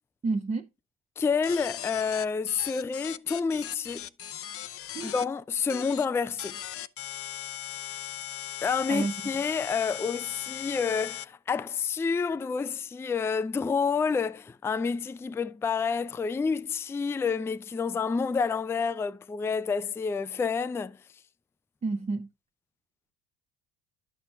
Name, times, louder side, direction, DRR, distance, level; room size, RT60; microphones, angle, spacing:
voice 1, 0.2-0.7 4.9-5.1 8.9-9.1 21.8-22.3, right 3 dB, 20° right, 0.7 m, -29 dB
voice 2, 1.2-4.1 5.0-6.6 8.6-21.0, left 5 dB, 10° left, 0.3 m, -29 dB
sound 1, 1.4-5.2 5.7-6.0 6.4-11.2, left 12 dB, 45° left, 0.6 m, -38 dB
11.0 x 5.9 x 2.6 m
supercardioid pair, 95°, 31 cm